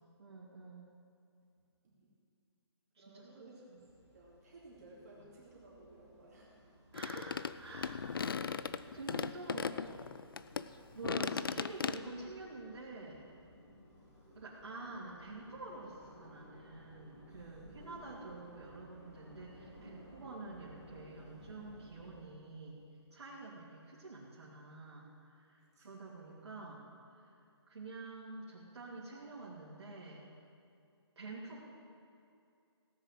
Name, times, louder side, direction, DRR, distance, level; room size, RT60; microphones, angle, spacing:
voice 1, 0.2-0.9 2.9-3.8 6.9-8.6 8.9-9.8 10.9-13.2 14.3-22.8 23.1-26.8 27.1-27.4 27.7-30.3 31.1-31.6, right 2 dB, 75° right, -7 dB, 3.0 m, -48 dB
voice 2, 3.0-3.7 4.1-6.5 17.3-18.6 19.7-20.3 25.6-26.0, right 2 dB, 35° right, -6 dB, 2.7 m, -59 dB
sound 1, 3.8-22.2, equal, 10° left, 2.4 m, -59 dB
sound 2, 6.9-10.7 11.0-12.0, left 6 dB, 50° left, 0.4 m, -37 dB
17.0 x 7.1 x 7.6 m, 2.5 s
hypercardioid pair, 175°, 15 cm